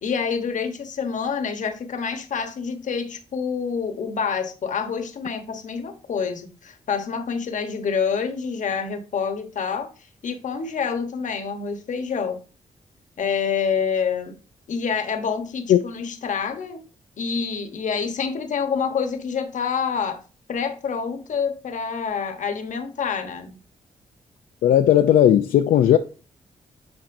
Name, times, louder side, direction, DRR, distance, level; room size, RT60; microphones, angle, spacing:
voice 1, 0.0-9.9 10.2-12.4 13.2-14.4 14.7-16.8 17.2-20.2 20.5-23.5, left 6 dB, 65° left, 1.0 m, -27 dB
voice 2, 24.6-26.0, left 11 dB, 85° left, 0.4 m, -16 dB
8.8 x 4.2 x 2.6 m
cardioid pair, 75°, 14 cm